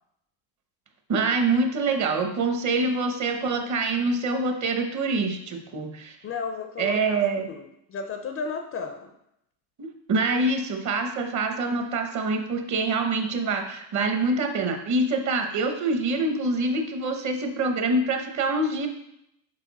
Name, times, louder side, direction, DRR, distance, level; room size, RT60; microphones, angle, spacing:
voice 1, 1.1-6.2 6.8-7.5 9.8-18.9, right 3 dB, 40° right, 5 dB, 0.9 m, -25 dB
voice 2, 6.2-9.1, left 5 dB, 30° left, 6 dB, 0.4 m, -34 dB
6.7 x 4.4 x 4.0 m, 0.79 s
cardioid pair, 130°, 47 cm